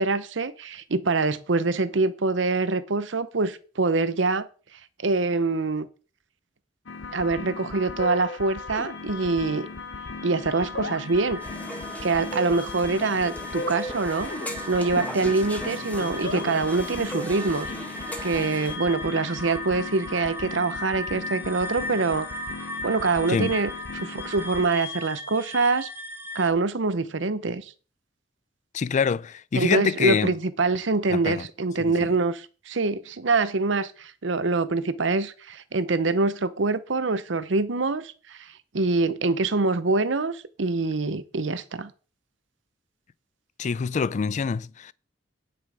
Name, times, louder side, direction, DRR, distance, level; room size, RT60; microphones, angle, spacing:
voice 1, 0.0-4.5 5.0-5.9 7.1-9.7 10.2-11.4 12.0-14.3 14.7-17.7 18.2-22.3 22.8-23.7 24.0-25.9 26.3-27.7 29.5-38.5 38.7-41.9, right 3 dB, 75° right, 0.8 m, -25 dB
sound 1, 6.9-24.7, left 4 dB, 75° left, 0.9 m, -37 dB
sound 2, 8.6-26.5, left 1 dB, 10° right, 0.9 m, -39 dB
sound 3, 11.4-18.8, equal, 10° left, 1.5 m, -37 dB
voice 2, 28.7-30.3 31.1-31.5 31.8-32.1 43.6-44.9, left 5 dB, 40° left, 0.3 m, -26 dB
9.7 x 6.2 x 4.9 m
head